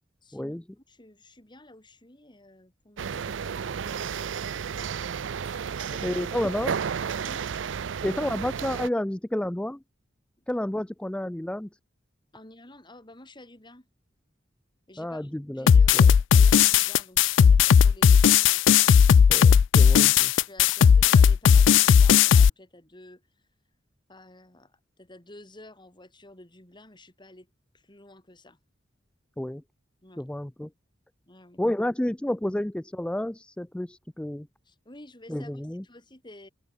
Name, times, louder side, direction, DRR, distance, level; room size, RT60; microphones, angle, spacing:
voice 1, 0.2-0.6 0.9-5.5 5.9-6.3 7.2-7.5 10.4-10.5 12.3-13.9 14.9-18.6 20.3-23.5 24.1-28.6 30.0-30.3 31.3-31.6 34.6-36.5, left 1 dB, 25° left, 4.5 m, -51 dB
sound 1, 3.0-8.9, right 7 dB, 75° right, 0.5 m, -32 dB
voice 2, 6.0-6.7 8.0-9.8 10.5-11.7 15.0-16.1 19.3-20.3 29.4-29.6 30.2-30.7 31.6-34.5 35.3-35.8, left 1 dB, 5° left, 0.4 m, -30 dB
sound 2, 15.7-22.5, left 7 dB, 80° left, 0.4 m, -16 dB
head